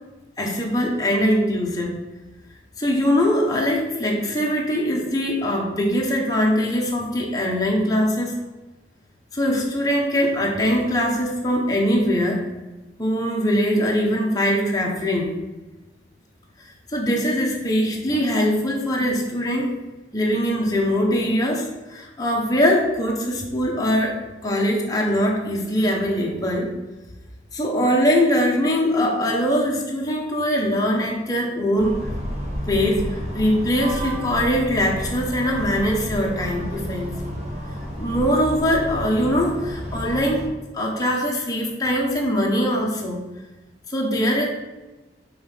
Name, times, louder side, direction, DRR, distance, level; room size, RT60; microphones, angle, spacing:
voice 1, 0.4-2.0 2.8-8.3 9.3-12.4 13.0-15.3 16.9-19.7 20.1-26.7 27.5-32.0 32.7-37.3 38.0-40.5 40.7-43.2 43.9-44.5, equal, 20° left, -1 dB, 1.1 m, -22 dB
sound 1, 31.8-40.5, equal, 35° right, 1.7 m, -31 dB
5.4 x 3.9 x 5.6 m, 1.1 s
head